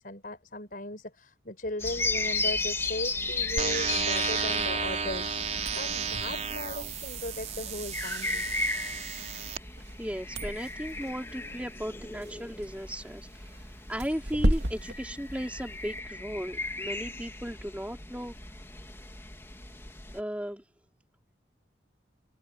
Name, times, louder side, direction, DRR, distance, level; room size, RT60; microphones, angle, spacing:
voice 1, 0.0-8.6, left 1 dB, 50° left, 5.6 m, -37 dB
sound 1, 1.8-20.2, left 3 dB, 15° left, 2.8 m, -36 dB
sound 2, 3.6-9.6, right 6 dB, 40° right, 4.9 m, -33 dB
sound 3, 5.5-16.0, right 1 dB, 60° right, 3.0 m, -36 dB
voice 2, 10.0-13.5 13.9-18.3 20.1-20.6, equal, 5° right, 4.4 m, -36 dB
head